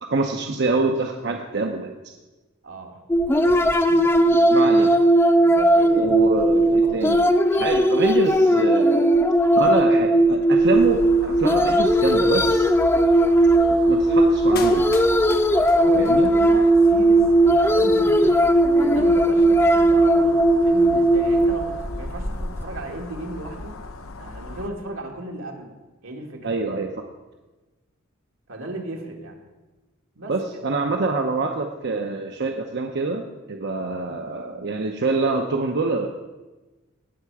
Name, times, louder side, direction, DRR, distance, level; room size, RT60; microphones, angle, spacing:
voice 1, 0.0-1.9 4.5-4.9 6.0-7.2 7.5-9.1 9.5-12.7 13.7-14.9 16.0-16.3 26.4-27.1 30.3-36.1, right 3 dB, 55° right, 3 dB, 0.8 m, -25 dB
voice 2, 2.6-3.0 3.4-5.1 5.4-6.2 6.5-7.0 15.8-18.4 18.7-23.8 24.2-25.7 26.0-26.5 28.5-29.4 30.2-30.6, right 2 dB, 85° right, 1 dB, 2.1 m, -36 dB
sound 1, 3.1-22.6, right 1 dB, 10° left, 0.5 m, -18 dB
sound 2, 10.6-24.7, left 2 dB, 90° left, 0.8 m, -38 dB
Clapping, 14.6-16.5 16.8-16.9, left 5 dB, 50° left, 0.9 m, -37 dB
18.5 x 6.7 x 4.8 m, 1.1 s
head